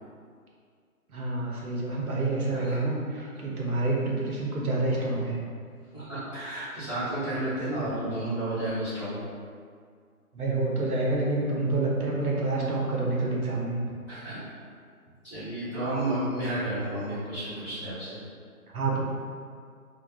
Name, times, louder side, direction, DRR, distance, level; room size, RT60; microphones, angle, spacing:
voice 1, 1.1-5.4 10.3-13.8 18.7-19.0, right 2 dB, 70° right, -3 dB, 0.7 m, -28 dB
voice 2, 5.9-9.2 14.1-14.4 15.2-18.2, right 1 dB, 20° left, -17 dB, 1.0 m, -31 dB
2.5 x 2.2 x 2.2 m, 2.1 s
hypercardioid pair, 180°, 45 cm